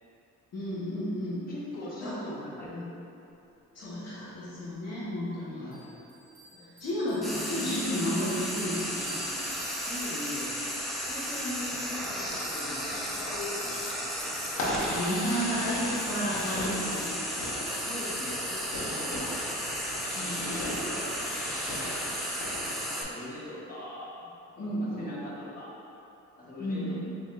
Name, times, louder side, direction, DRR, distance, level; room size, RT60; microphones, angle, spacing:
voice 1, 0.5-1.5 2.0-2.2 2.7-2.8 3.7-5.6 6.5-9.3 14.6-17.2 20.1-20.7 24.6-25.2 26.6-26.9, equal, 55° left, -9 dB, 1.0 m, -32 dB
voice 2, 1.5-3.0 5.5-5.9 9.4-10.6 11.0-13.9 17.7-18.6 18.8-19.4 20.1-21.9 22.9-24.1 24.8-25.7 26.4-26.9, left 2 dB, 30° left, -7 dB, 1.2 m, -41 dB
Bell, 5.7-10.2, right 2 dB, 30° right, 1.4 m, -48 dB
Frying (food), 7.2-23.0, equal, ahead, 0.5 m, -34 dB
Fireworks, 14.5-22.9, left 1 dB, 80° left, 0.9 m, -38 dB
7.3 x 2.6 x 2.3 m, 2.8 s
cardioid pair, 90°, 30 cm